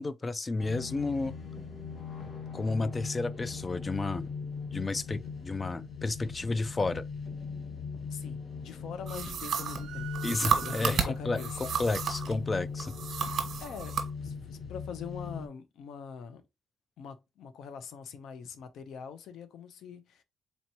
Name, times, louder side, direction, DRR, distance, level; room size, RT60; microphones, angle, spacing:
voice 1, 0.0-1.3 2.5-4.3 4.7-7.0 10.2-12.9 13.2-13.4, left 3 dB, 25° left, 0.3 m, -32 dB
sound 1, 0.6-15.5, left 5 dB, 45° left, 1.5 m, -39 dB
voice 2, 8.1-11.6 13.6-16.4 17.0-20.2, left 7 dB, 75° left, 0.7 m, -43 dB
sound 2, 9.1-12.4 12.8-14.1, right 7 dB, 60° right, 1.2 m, -32 dB
sound 3, 9.5-11.3, right 14 dB, 85° right, 0.5 m, -46 dB
4.2 x 2.9 x 2.9 m
cardioid pair, 90°, 0 cm